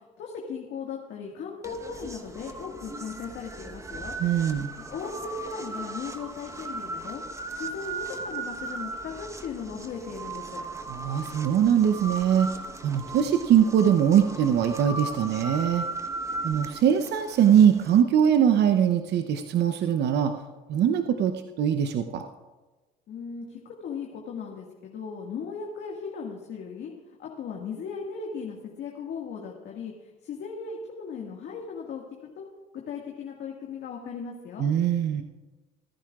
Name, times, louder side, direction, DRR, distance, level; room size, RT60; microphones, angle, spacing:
voice 1, 0.2-4.2 4.9-7.2 7.5-10.7 23.1-26.9 27.2-32.0 32.4-32.5 32.7-34.7, left 5 dB, 60° left, -1 dB, 1.9 m, -37 dB
sound 1, 1.6-18.0, right 2 dB, 15° right, 1.1 m, -37 dB
voice 2, 4.2-4.7 10.9-12.5 12.8-15.8 16.4-20.3 20.7-22.2 34.6-35.2, right 9 dB, 60° right, 7 dB, 0.8 m, -22 dB
26.5 x 10.5 x 2.4 m, 1.2 s
supercardioid pair, 75°, 20 cm